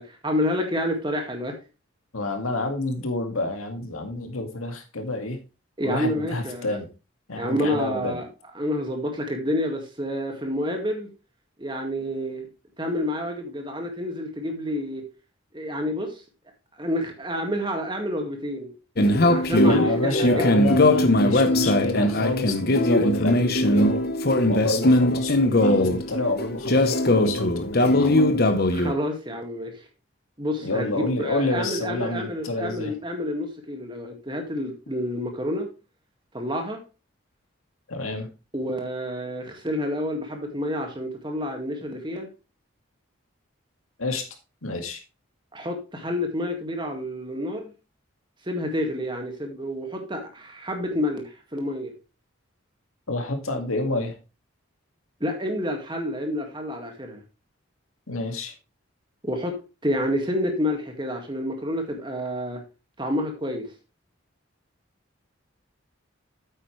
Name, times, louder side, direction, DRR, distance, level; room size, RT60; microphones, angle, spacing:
voice 1, 0.0-1.6 5.8-6.8 7.4-8.3 8.6-11.1 11.6-12.5 12.8-15.1 15.5-16.2 16.8-18.7 19.1-20.4 28.7-29.7 30.4-35.7 36.3-36.8 38.5-42.3 45.5-47.7 48.5-51.9 55.2-57.2 59.2-59.6 59.8-62.6 63.0-63.7, equal, 20° right, 3 dB, 2.0 m, -29 dB
voice 2, 2.1-5.4 5.8-6.9 7.3-8.2 19.6-24.1 24.4-28.3 30.6-32.9 37.9-38.3 44.0-44.3 44.6-45.0 53.1-54.2 58.1-58.5, left 2 dB, 85° left, 4 dB, 2.1 m, -29 dB
sound 1, 19.0-28.9, left 1 dB, 45° left, 1.0 m, -20 dB
8.8 x 8.8 x 3.2 m, 0.30 s
head